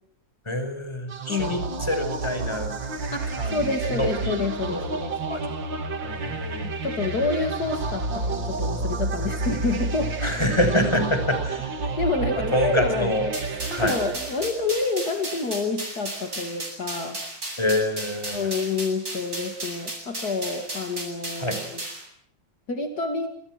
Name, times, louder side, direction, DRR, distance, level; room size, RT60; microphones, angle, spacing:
voice 1, 0.5-2.7 3.3-4.9 5.3-5.4 6.0-6.7 10.2-11.8 12.5-13.3 13.7-14.0 17.6-18.5 21.4-21.6, left 1 dB, 15° left, 7 dB, 5.8 m, -26 dB
sound 1, 1.1-14.8, right 3 dB, 80° right, 3.1 m, -30 dB
voice 2, 1.3-1.6 3.1-5.1 6.8-10.1 11.8-13.1 13.8-17.2 18.3-21.8 22.7-23.3, left 3 dB, 55° left, 5 dB, 2.8 m, -28 dB
sound 2, 13.3-22.0, right 1 dB, 50° right, 8.7 m, -35 dB
28.0 x 27.5 x 6.2 m, 0.65 s
omnidirectional pair, 2.0 m